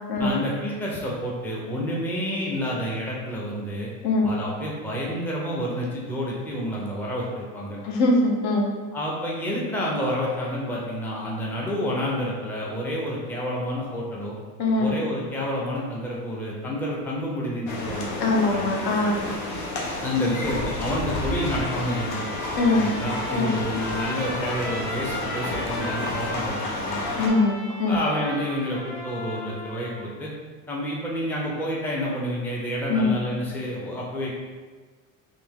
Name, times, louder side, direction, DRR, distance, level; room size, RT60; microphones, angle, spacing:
voice 1, 0.2-3.9 4.2-7.8 8.9-14.4 14.8-18.6 20.0-22.2 22.7-27.2 27.9-30.3 30.7-34.3, equal, 5° left, -4 dB, 0.5 m, -29 dB
voice 2, 7.8-8.7 14.6-14.9 18.2-19.2 22.6-22.9 23.3-23.5 27.2-28.0 32.9-33.1, left 2 dB, 65° left, 0 dB, 0.9 m, -22 dB
sound 1, 17.7-27.3, left 2 dB, 90° left, 0.9 m, -31 dB
Trumpet, 21.3-30.0, left 1 dB, 35° left, 1.1 m, -37 dB
3.3 x 2.7 x 3.5 m, 1.4 s
cardioid pair, 125°, 42 cm